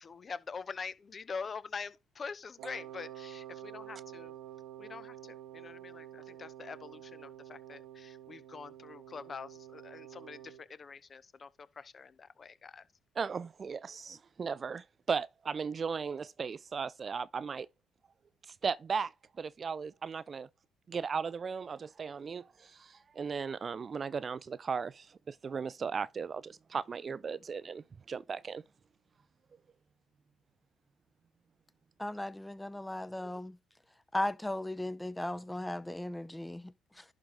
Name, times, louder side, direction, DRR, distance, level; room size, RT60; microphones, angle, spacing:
voice 1, 0.0-4.3 4.8-5.1 5.5-10.4 10.8-11.5 11.9-12.1 12.4-12.8, left 5 dB, 40° left, 0.9 m, -44 dB
Wind instrument woodwind instrument, 2.6-10.6, right 12 dB, 80° right, 1.1 m, -49 dB
voice 2, 13.2-17.7 18.6-19.1 19.4-20.5 20.9-28.6, right 5 dB, 40° right, 0.5 m, -36 dB
voice 3, 32.0-33.6 34.1-37.0, left 1 dB, 10° left, 0.8 m, -37 dB
11.5 x 4.6 x 3.9 m
supercardioid pair, 65°, 0 cm